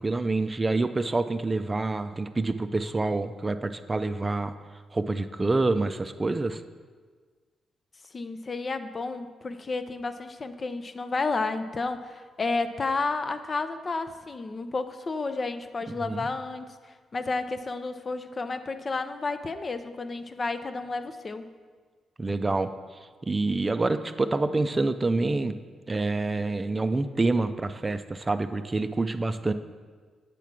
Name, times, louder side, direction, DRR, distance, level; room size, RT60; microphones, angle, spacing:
voice 1, 0.0-4.5 4.9-6.6 16.0-16.3 22.2-22.7 23.2-25.6 25.9-29.5, right 3 dB, 30° right, 10 dB, 0.4 m, -27 dB
voice 2, 8.1-21.5, left 3 dB, 40° left, 9 dB, 0.5 m, -31 dB
8.3 x 3.5 x 5.9 m, 1.5 s
supercardioid pair, 60°, 0 cm